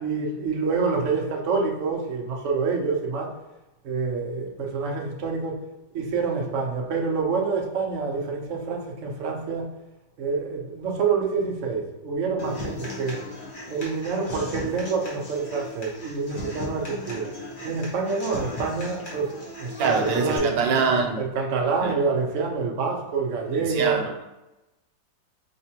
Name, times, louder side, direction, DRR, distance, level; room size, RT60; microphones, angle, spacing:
voice 1, 0.0-3.3 3.8-5.6 5.9-9.7 10.2-13.2 13.7-17.3 17.6-20.5 21.1-24.0, right 4 dB, 60° right, 0 dB, 0.8 m, -27 dB
Human voice / Acoustic guitar, 12.4-20.4, left 1 dB, 35° left, 0.9 m, -37 dB
voice 2, 19.8-21.2 21.8-21.9 23.5-24.2, right 5 dB, 85° right, 1 dB, 1.4 m, -24 dB
4.6 x 3.2 x 2.8 m, 0.99 s
omnidirectional pair, 2.0 m